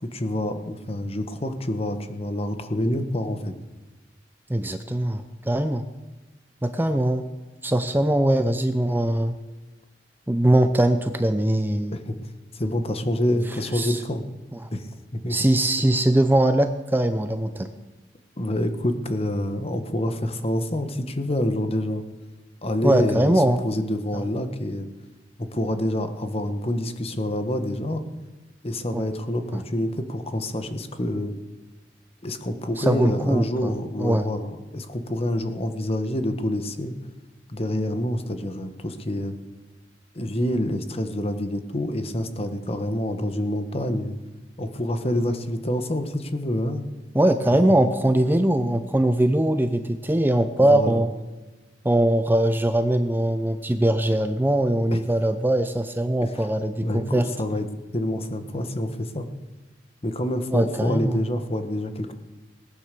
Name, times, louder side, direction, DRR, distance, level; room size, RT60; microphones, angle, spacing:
voice 1, 0.0-3.5 11.9-12.1 12.5-14.2 14.7-15.4 18.4-22.0 22.6-23.3 23.6-24.9 25.4-28.0 28.6-31.3 32.2-36.9 37.5-39.3 40.1-44.2 44.6-46.9 50.6-51.0 54.9-55.0 56.2-56.4 56.8-57.7 57.9-59.3 60.0-62.1, left 1 dB, 35° left, 8 dB, 1.3 m, -27 dB
voice 2, 4.5-5.8 6.6-7.3 7.6-9.3 10.3-12.0 13.7-14.0 14.5-14.7 15.3-17.7 22.8-23.6 24.1-24.2 28.9-29.0 29.5-29.6 32.8-34.3 47.1-51.1 51.8-57.2 60.5-61.2, right 1 dB, 10° right, 9 dB, 0.6 m, -21 dB
19.0 x 9.7 x 6.8 m, 1.2 s
head